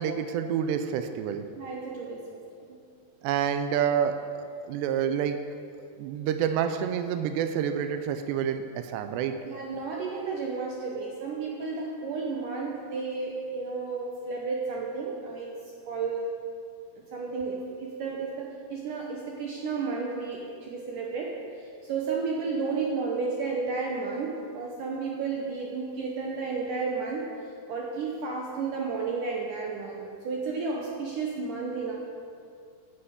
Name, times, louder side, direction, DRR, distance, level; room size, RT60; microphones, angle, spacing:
voice 1, 0.0-1.4 3.2-5.4 6.0-9.4, right 8 dB, 90° right, 8 dB, 2.9 m, -28 dB
voice 2, 1.6-2.4 2.7-2.8 9.4-15.5 15.9-16.3 17.1-21.3 21.6-27.3 27.7-32.0, right 4 dB, 70° right, -1 dB, 2.1 m, -32 dB
9.8 x 8.7 x 8.0 m, 2.3 s
omnidirectional pair, 4.8 m